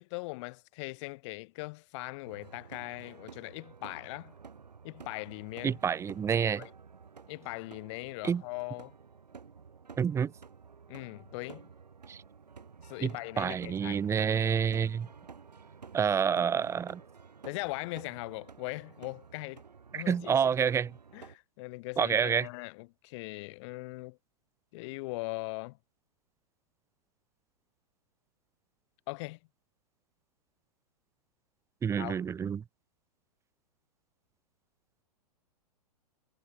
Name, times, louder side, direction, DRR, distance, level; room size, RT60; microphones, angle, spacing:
voice 1, 0.0-4.3 4.8-5.8 6.6-6.7 7.3-8.9 10.9-11.7 12.8-14.0 17.4-19.6 19.9-20.4 21.1-24.2 24.7-25.8 29.1-29.4 32.0-32.2, left 24 dB, 45° left, 2.9 m, -40 dB
sound 1, 2.3-21.4, right 5 dB, 80° right, 4.9 m, -52 dB
voice 2, 5.6-6.6 8.2-8.4 10.0-10.3 12.1-12.2 13.0-13.1 13.4-15.1 15.9-17.0 19.9-20.9 22.0-22.5 31.8-32.6, right 7 dB, 15° right, 0.7 m, -28 dB
figure-of-eight pair, 110°, 21 cm